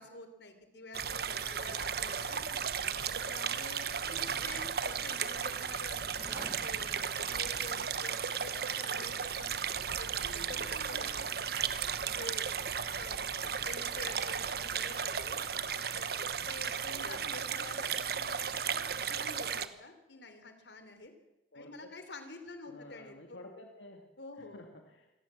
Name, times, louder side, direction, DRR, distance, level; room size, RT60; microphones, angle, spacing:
voice 1, 0.0-2.4 2.9-6.9 7.2-9.7 10.0-11.4 12.0-12.5 13.0-15.4 15.9-16.1 16.4-21.1 21.5-23.4 24.2-24.6, left 2 dB, 70° left, 9 dB, 3.4 m, -48 dB
sound 1, 0.9-19.7, right 7 dB, 55° right, 1.1 m, -35 dB
voice 2, 2.5-2.9 4.0-5.0 10.2-11.6 13.6-14.0 17.2-17.6 21.5-21.9 22.7-24.1 24.3-25.1, left 1 dB, 90° left, 3 dB, 2.2 m, -53 dB
sound 2, 6.0-8.1, right 1 dB, 10° right, 1.1 m, -51 dB
25.5 x 17.5 x 7.5 m, 1.0 s
head